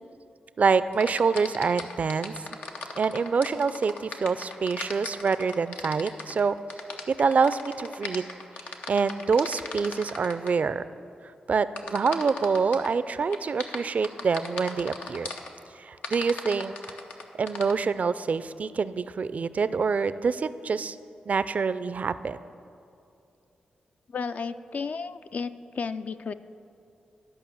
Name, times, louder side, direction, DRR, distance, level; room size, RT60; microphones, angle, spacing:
voice 1, 0.6-2.3 3.0-6.6 7.1-8.2 8.9-10.8 11.5-15.3 15.8-16.7 17.4-21.0 21.3-22.4, right 5 dB, 55° right, 15 dB, 0.4 m, -26 dB
sound 1, 0.9-10.5 11.8-12.9 13.3-15.5 16.0-17.7, left 4 dB, 90° left, 0.7 m, -37 dB
voice 2, 24.1-26.3, left 5 dB, 60° left, 11 dB, 0.3 m, -33 dB
11.5 x 5.4 x 7.0 m, 2.6 s
cardioid pair, 50°, 3 cm